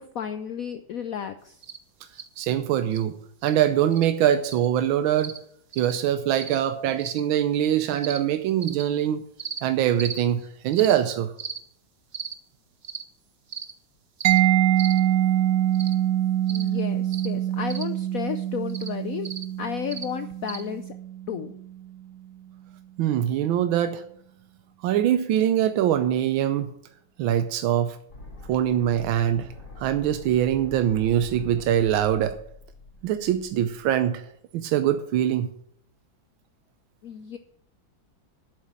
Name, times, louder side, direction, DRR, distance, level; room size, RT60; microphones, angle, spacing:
voice 1, 0.0-1.6 16.5-19.3 19.6-21.0 21.3-21.5 37.0-37.4, left 8 dB, 75° left, 10 dB, 0.8 m, -33 dB
sound 1, 1.6-1.8 2.1-2.3 2.9-3.0 3.4-3.5 3.9-4.0 4.5-4.7 5.2-5.4 5.7-5.9 6.4-6.6 7.0-7.2 8.0-8.2 8.6-8.8 9.4-9.6 10.0-10.2 10.7-10.9 11.4-11.6 12.1-12.3 12.8-13.0 13.5-13.7 14.2-14.4 14.8-15.0 15.7-15.9 16.5-16.7 17.1-17.3 17.7-17.8 18.7-18.9 19.2-19.4 19.9-20.0 20.5-20.6, right 6 dB, 50° right, 0.6 m, -36 dB
voice 2, 2.4-5.3 5.8-9.2 9.6-11.3 23.0-24.0 24.8-26.7 27.2-28.0 28.5-29.5 29.8-32.4 33.0-34.2 34.5-35.5, right 10 dB, 90° right, 10 dB, 1.5 m, -23 dB
Mallet percussion, 14.2-21.8, right 12 dB, 70° right, 1.1 m, -24 dB
sound 2, 28.1-34.1, left 1 dB, 40° left, 4.3 m, -44 dB
8.2 x 7.3 x 8.7 m, 0.69 s
omnidirectional pair, 2.1 m